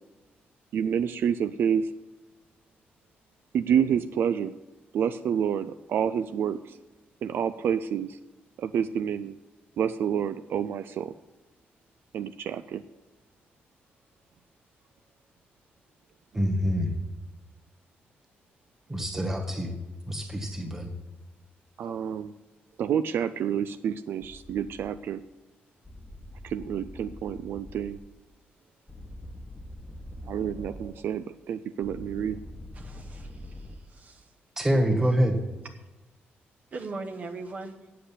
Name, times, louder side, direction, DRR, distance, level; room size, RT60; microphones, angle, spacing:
voice 1, 0.7-1.9 3.5-4.5 4.9-6.8 7.2-8.2 8.6-9.4 9.8-11.1 12.1-12.8 16.3-16.5 19.0-19.1 21.8-22.3 22.8-25.2 26.4-28.0 30.3-32.4, right 8 dB, 70° right, 11 dB, 0.4 m, -28 dB
voice 2, 16.3-17.0 18.9-19.8 20.1-20.9 21.8-21.9 34.6-35.4, equal, 10° right, 1 dB, 1.8 m, -26 dB
sound 1, 24.2-24.9 25.8-28.0 28.9-30.9 31.8-33.8, left 1 dB, 5° left, 1.1 m, -43 dB
voice 3, 32.7-34.3 35.8-35.9 36.7-37.9, right 3 dB, 40° right, 3 dB, 1.0 m, -40 dB
8.3 x 7.7 x 8.6 m, 1.1 s
cardioid pair, 135°, 4 cm